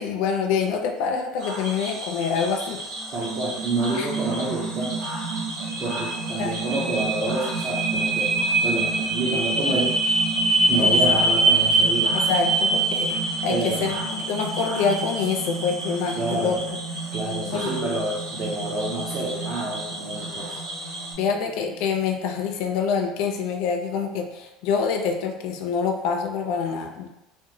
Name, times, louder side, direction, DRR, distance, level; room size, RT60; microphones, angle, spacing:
voice 1, 0.0-2.8 3.9-4.1 6.4-6.6 10.7-11.0 12.1-16.8 17.5-17.7 21.2-27.1, left 6 dB, 55° left, 3 dB, 0.3 m, -26 dB
Cricket / Frog, 1.4-21.1, right 1 dB, 40° right, 1.0 m, -35 dB
voice 2, 3.1-4.9 5.8-9.9 10.7-12.1 13.5-13.9 16.2-16.6 17.1-20.6, right 2 dB, 25° right, -6 dB, 0.4 m, -28 dB
sound 1, 3.2-21.3, right 3 dB, 60° right, 1.1 m, -25 dB
2.8 x 2.1 x 2.6 m, 0.94 s
cardioid pair, 180°, 0 cm